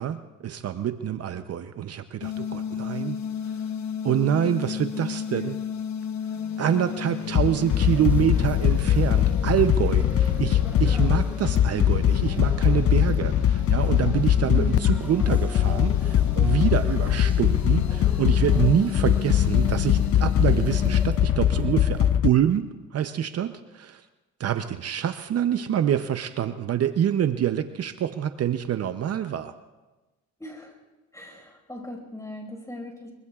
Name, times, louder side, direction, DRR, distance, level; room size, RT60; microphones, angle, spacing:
voice 1, 0.0-3.2 4.0-5.6 6.6-24.0 24.4-29.5, right 10 dB, 55° right, 10 dB, 0.7 m, -26 dB
sound 1, 2.2-21.1, left 8 dB, 65° left, 0.9 m, -33 dB
sound 2, 7.3-22.3, left 11 dB, 50° left, 0.5 m, -22 dB
sound 3, 7.5-22.2, right 2 dB, 5° right, 0.4 m, -41 dB
voice 2, 14.5-15.0 30.4-30.7 31.1-33.1, left 1 dB, 10° left, 2 dB, 5.2 m, -38 dB
24.0 x 23.0 x 2.4 m, 1.2 s
cardioid pair, 90°, 30 cm